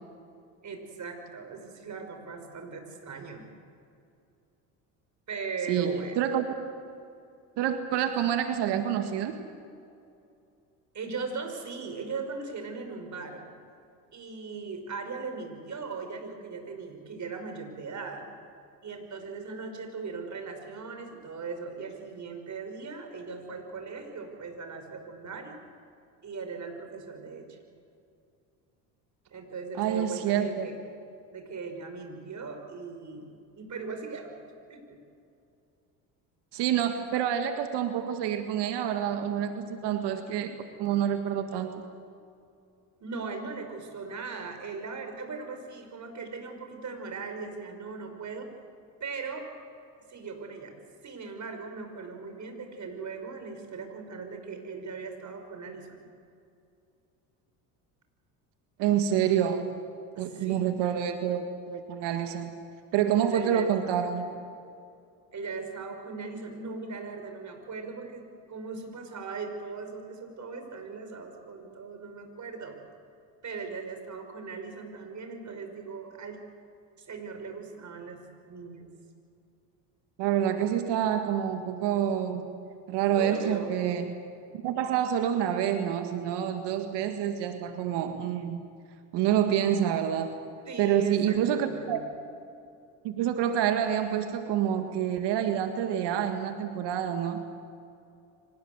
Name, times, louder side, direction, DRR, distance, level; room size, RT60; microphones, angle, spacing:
voice 1, 0.6-3.5 5.3-6.2 10.9-13.5 14.1-18.3 18.8-25.6 26.2-27.6 29.3-30.8 31.3-33.3 33.6-34.3 34.7-35.0 43.0-48.5 49.0-49.5 50.1-50.7 51.0-56.1 60.1-60.7 63.3-64.3 65.3-72.8 73.4-76.4 77.0-78.9 83.2-83.8 90.7-92.0, right 4 dB, 40° right, 5 dB, 5.6 m, -39 dB
voice 2, 5.7-6.6 7.6-9.4 29.8-30.7 36.5-41.7 58.8-59.6 60.2-62.5 62.9-64.3 80.2-82.5 82.9-84.1 84.5-88.7 89.1-90.4 90.8-92.0 93.0-97.5, right 9 dB, 65° right, 7 dB, 1.9 m, -27 dB
25.0 x 19.5 x 8.0 m, 2.5 s
hypercardioid pair, 70°, 44 cm